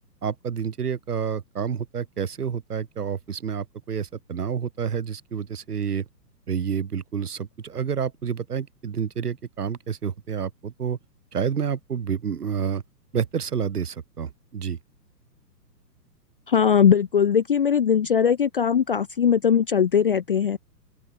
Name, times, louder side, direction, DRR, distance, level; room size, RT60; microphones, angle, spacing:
voice 1, 0.2-6.1 6.5-11.0 11.3-12.8 13.1-14.8, right 7 dB, 65° right, 3.5 m, -29 dB
voice 2, 16.5-20.6, left 7 dB, 35° left, 0.4 m, -20 dB
open air
figure-of-eight pair, 120°, 50 cm